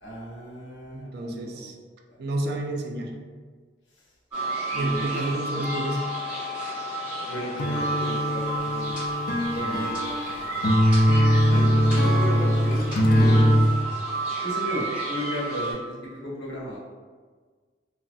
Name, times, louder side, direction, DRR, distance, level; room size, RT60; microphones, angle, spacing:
voice 1, 0.0-1.7 4.7-5.4 7.2-9.0 9.5-10.1 11.5-12.9 13.2-13.7 14.4-16.8, equal, 75° left, -5 dB, 0.9 m, -35 dB
voice 2, 0.9-1.8 2.2-3.1 4.7-6.0, right 1 dB, 60° right, 2 dB, 0.4 m, -29 dB
sound 1, 4.3-15.7, right 2 dB, 10° right, 1.4 m, -31 dB
sound 2, 7.6-13.7, equal, 55° left, 0.4 m, -21 dB
3.2 x 2.0 x 2.5 m, 1.5 s
head